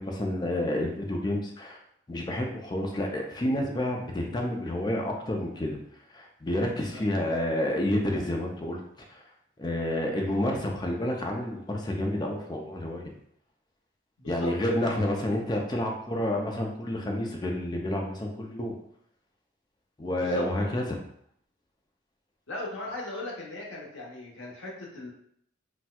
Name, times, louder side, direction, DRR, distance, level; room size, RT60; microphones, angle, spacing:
voice 1, 0.0-1.8 2.1-5.8 6.1-8.8 9.1-9.2 9.6-13.1 14.2-18.8 20.0-21.0, left 1 dB, 20° left, 1 dB, 0.4 m, -29 dB
voice 2, 14.2-15.0 20.2-20.5 22.5-25.1, left 2 dB, 80° left, -3 dB, 1.0 m, -38 dB
4.2 x 2.2 x 2.3 m, 0.68 s
head